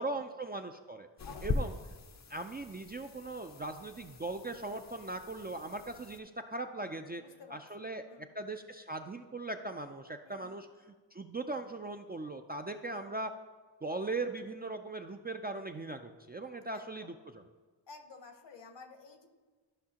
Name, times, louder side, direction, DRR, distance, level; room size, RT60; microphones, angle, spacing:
voice 1, 0.0-1.1 1.4-1.7 2.3-7.2 7.5-8.0 8.4-13.3 13.8-17.1, right 2 dB, 25° right, 5 dB, 0.3 m, -39 dB
voice 2, 1.2-1.7 7.1-8.3 10.2-10.6 16.7-17.2 17.9-19.3, left 4 dB, 65° left, 6 dB, 1.0 m, -53 dB
sound 1, 1.2-6.2, left 3 dB, 35° left, 0.6 m, -41 dB
13.0 x 5.5 x 2.9 m, 1.4 s
wide cardioid pair, 90°, 47 cm